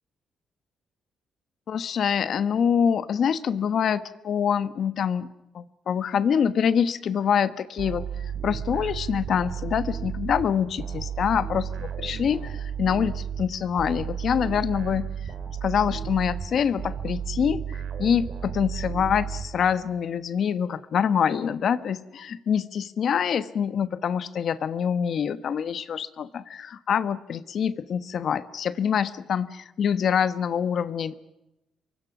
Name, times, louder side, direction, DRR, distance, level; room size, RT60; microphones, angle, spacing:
voice 1, 1.7-5.3 5.5-15.1 15.6-31.1, left 7 dB, 60° left, 13 dB, 1.2 m, -25 dB
sound 1, 7.8-20.0, right 8 dB, 65° right, 3.3 m, -33 dB
27.5 x 23.5 x 6.1 m, 0.93 s
cardioid pair, 90°, 0 cm